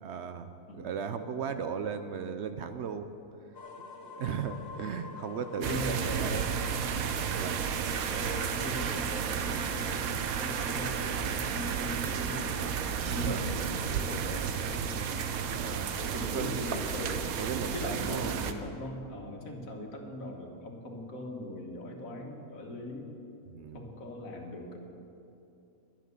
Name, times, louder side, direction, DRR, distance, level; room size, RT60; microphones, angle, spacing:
voice 1, 0.0-3.1 3.8-6.5 7.3-7.6 13.1-13.5 15.5-15.9 16.3-16.6 17.4-18.4 23.5-23.9, right 7 dB, 60° right, 9 dB, 0.8 m, -36 dB
sound 1, 3.5-15.3, left 4 dB, 50° left, 1.1 m, -49 dB
voice 2, 5.6-6.7 8.1-12.6 13.1-15.2 15.5-17.3 17.7-23.2 23.7-24.8, left 1 dB, 70° left, 2 dB, 1.8 m, -40 dB
sound 2, 5.6-18.5, right 7 dB, 80° right, 1.2 m, -32 dB
11.5 x 10.5 x 6.7 m, 2.7 s
omnidirectional pair, 1.5 m